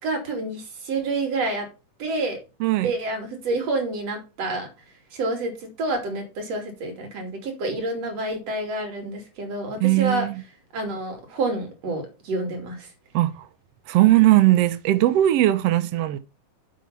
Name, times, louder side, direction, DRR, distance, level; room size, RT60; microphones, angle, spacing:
voice 1, 0.0-1.7 2.0-2.4 2.8-4.7 5.1-10.3 10.7-12.9, right 2 dB, 55° right, 3.7 m, -28 dB
voice 2, 2.6-2.9 9.8-10.4 13.1-13.5 13.9-16.2, right 15 dB, 75° right, 1.4 m, -19 dB
7.7 x 6.7 x 5.6 m
omnidirectional pair, 3.7 m